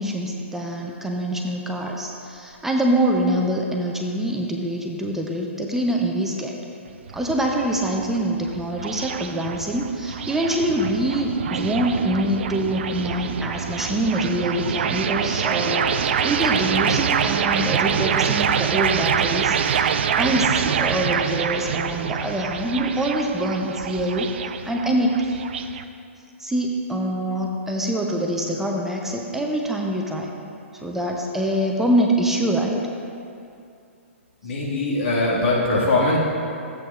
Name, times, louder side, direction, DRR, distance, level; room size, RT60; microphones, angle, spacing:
voice 1, 0.0-6.6 7.1-25.3 26.4-30.3 30.7-32.8, right 1 dB, 5° right, 0 dB, 0.6 m, -25 dB
sound 1, 6.9-25.8, right 7 dB, 55° right, 0.4 m, -25 dB
voice 2, 34.4-36.2, left 2 dB, 60° left, -5 dB, 1.9 m, -21 dB
12.5 x 7.9 x 2.4 m, 2.5 s
figure-of-eight pair, 120°, 7 cm